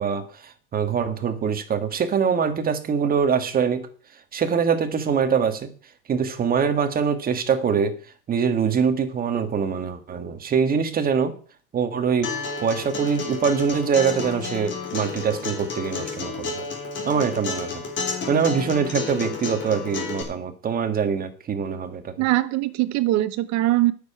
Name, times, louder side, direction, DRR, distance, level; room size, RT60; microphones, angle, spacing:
voice 1, 0.0-5.7 6.1-8.0 8.3-11.3 11.7-12.3 12.6-16.6 17.1-17.8 18.3-22.2, right 6 dB, 20° right, 8 dB, 1.6 m, -24 dB
Acoustic guitar, 12.2-20.2, left 4 dB, 25° left, 3.8 m, -31 dB
voice 2, 22.2-23.9, right 16 dB, 40° right, 13 dB, 1.2 m, -21 dB
9.3 x 6.9 x 8.4 m, 0.42 s
supercardioid pair, 130°, 42 cm